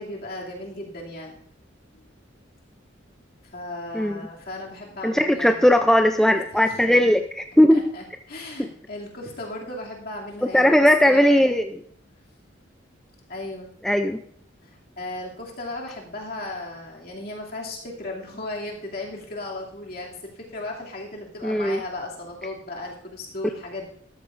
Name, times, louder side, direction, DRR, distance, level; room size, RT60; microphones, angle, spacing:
voice 1, 0.0-1.4 3.5-5.6 6.3-7.1 7.7-10.8 11.0-11.5 13.3-13.7 14.6-23.9, left 2 dB, 50° left, -2 dB, 2.5 m, -36 dB
voice 2, 5.0-7.8 10.5-11.8 13.8-14.2 21.4-21.8, left 1 dB, ahead, 6 dB, 0.3 m, -18 dB
13.0 x 12.5 x 2.5 m, 0.64 s
head